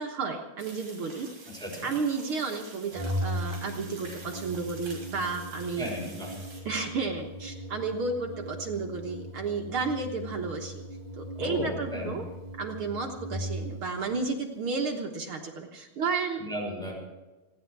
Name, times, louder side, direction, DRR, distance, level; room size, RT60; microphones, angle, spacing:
voice 1, 0.0-1.3 1.8-5.9 6.6-10.8 11.2-12.2 12.6-16.4, right 4 dB, 65° right, 1 dB, 1.3 m, -32 dB
sound 1, 0.6-6.6, right 3 dB, 50° right, 6.5 m, -48 dB
voice 2, 1.5-1.9 5.8-6.4 11.3-12.2 16.4-17.0, equal, ahead, -1 dB, 5.5 m, -35 dB
Organ, 2.9-13.9, equal, 15° right, 1.8 m, -38 dB
29.5 x 10.5 x 4.7 m, 1.1 s
omnidirectional pair, 4.3 m